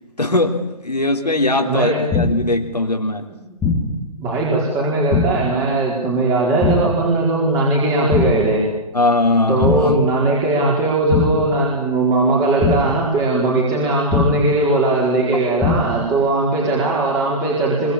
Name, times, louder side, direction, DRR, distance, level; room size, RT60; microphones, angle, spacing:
voice 1, 0.2-3.2 8.9-10.0, left 2 dB, 85° left, 3 dB, 3.7 m, -19 dB
voice 2, 1.7-2.0 4.2-8.6 9.5-17.9, right 2 dB, 15° right, -3 dB, 4.6 m, -19 dB
sound 1, 2.1-2.6 3.6-4.1 5.1-5.6 6.6-7.1 8.1-8.6 9.6-10.1 11.1-11.6 12.6-13.1 14.1-14.6 15.6-16.1, left 3 dB, 10° left, 2.3 m, -21 dB
24.5 x 24.0 x 8.6 m, 0.92 s
figure-of-eight pair, 145°, 20 cm